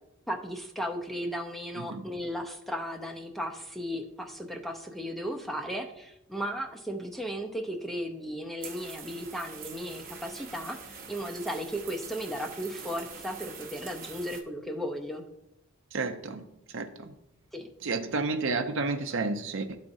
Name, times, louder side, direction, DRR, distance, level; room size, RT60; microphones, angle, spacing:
voice 1, 0.3-15.2 17.5-17.7, equal, ahead, 3 dB, 0.6 m, -35 dB
sound 1, 8.6-14.4, right 6 dB, 45° right, 0.8 m, -44 dB
voice 2, 15.9-16.4 16.7-17.1 17.8-19.8, right 3 dB, 70° right, 8 dB, 0.6 m, -31 dB
12.0 x 4.1 x 2.6 m, 0.83 s
head